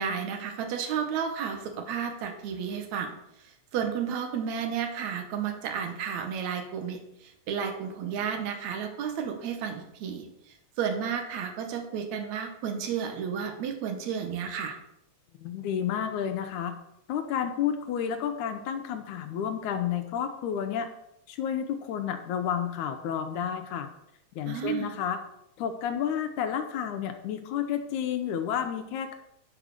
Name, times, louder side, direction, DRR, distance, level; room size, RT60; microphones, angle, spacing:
voice 1, 0.0-14.8 24.5-24.9, right 7 dB, 70° right, 4 dB, 2.4 m, -32 dB
voice 2, 15.3-16.7 17.1-20.9 21.3-23.9 24.4-25.2 25.6-29.1, left 8 dB, 80° left, 6 dB, 2.1 m, -31 dB
9.9 x 4.9 x 6.5 m, 0.83 s
omnidirectional pair, 3.5 m